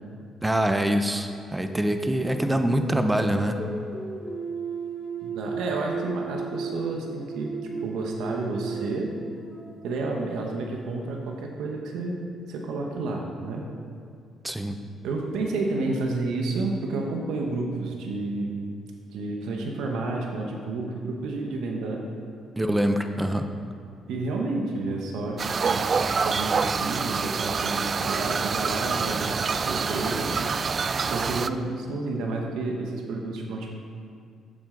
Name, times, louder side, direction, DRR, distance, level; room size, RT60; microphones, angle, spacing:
voice 1, 0.4-3.6 14.4-14.8 22.6-23.5, right 1 dB, 10° right, 7 dB, 0.8 m, -24 dB
sound 1, 2.7-10.0, right 4 dB, 15° left, 1.9 m, -35 dB
voice 2, 5.2-7.5 7.8-9.2 9.8-12.2 12.5-13.7 15.0-18.5 19.1-22.0 24.1-25.9 26.1-30.3 31.0-33.7, right 3 dB, 85° right, 1 dB, 1.1 m, -30 dB
sound 2, 25.4-31.5, right 5 dB, 45° right, 0.3 m, -26 dB
11.5 x 7.6 x 3.9 m, 2.3 s
cardioid pair, 90°, 0 cm